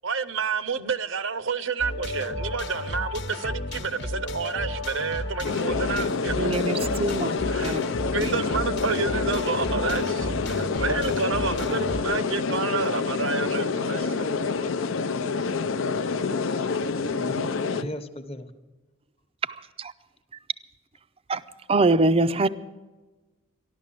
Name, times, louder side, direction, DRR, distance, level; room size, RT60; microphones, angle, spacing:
voice 1, 0.0-6.6 7.5-7.7 8.1-14.7, right 4 dB, 65° right, 0.7 m, -30 dB
sound 1, 1.8-12.0, left 1 dB, 55° left, 1.0 m, -33 dB
sound 2, 5.4-17.8, left 4 dB, 70° left, 0.6 m, -27 dB
voice 2, 6.4-7.3 7.6-7.8 8.2-8.4 17.4-17.5 19.8-19.9 21.3-21.4 21.7-22.5, right 2 dB, 25° right, 0.4 m, -23 dB
voice 3, 17.7-18.5, left 1 dB, 30° left, 0.9 m, -40 dB
14.0 x 12.0 x 7.6 m
head